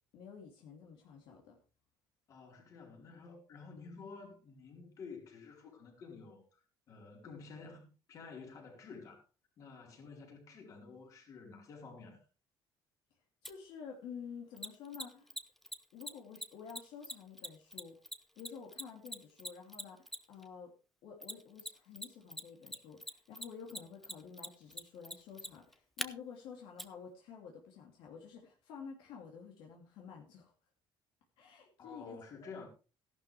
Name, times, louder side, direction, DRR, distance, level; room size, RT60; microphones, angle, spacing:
voice 1, 0.1-1.6 13.4-15.4 15.9-18.0 18.3-20.7 21.0-30.5 31.4-32.5, left 6 dB, 70° left, 2.8 m, -50 dB
voice 2, 2.3-9.2 9.6-12.2 31.8-32.7, left 4 dB, 40° left, 4.3 m, -51 dB
Mechanisms, 13.4-13.5 14.6-20.4 21.2-22.1 22.3-26.1 26.8-26.9, left 1 dB, 5° left, 0.8 m, -42 dB
15.0 x 11.5 x 3.4 m
cardioid pair, 170°, 8 cm